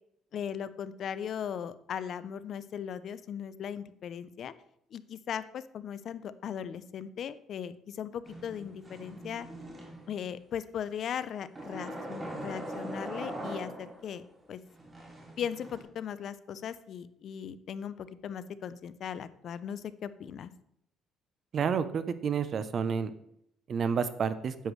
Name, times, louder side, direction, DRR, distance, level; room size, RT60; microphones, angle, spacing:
voice 1, 0.3-4.5 4.9-9.5 10.1-14.2 14.5-14.6 15.4-20.5, left 8 dB, 50° left, 15 dB, 0.4 m, -38 dB
sound 1, 8.2-10.3 11.6-14.2 14.7-15.8, right 1 dB, 15° right, 2.3 m, -41 dB
voice 2, 21.5-23.1 23.7-24.5, right 6 dB, 40° right, 13 dB, 0.6 m, -29 dB
10.0 x 8.0 x 3.1 m, 0.73 s
cardioid pair, 140°, 0 cm